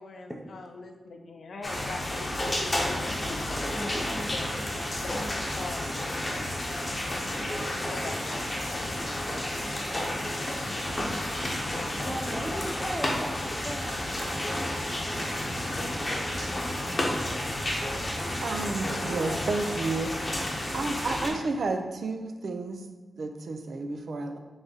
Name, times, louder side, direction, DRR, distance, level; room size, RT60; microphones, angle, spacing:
voice 1, 0.0-3.4 4.3-4.5 5.0-5.2 5.6-5.9 6.3-6.5 7.7-9.1, left 3 dB, 65° left, 4 dB, 0.5 m, -42 dB
sound 1, 1.6-21.3, left 1 dB, 25° left, 0.8 m, -31 dB
voice 2, 3.7-4.9 5.4-5.5 9.6-14.2 15.1-16.0 18.1-18.2, equal, 5° right, 3 dB, 0.5 m, -40 dB
sound 2, 11.6-18.4, right 1 dB, 25° right, 0.9 m, -44 dB
voice 3, 18.4-22.8 23.2-24.4, right 3 dB, 65° right, 5 dB, 0.4 m, -32 dB
3.8 x 3.3 x 3.8 m, 1.3 s
wide cardioid pair, 120°, 0 cm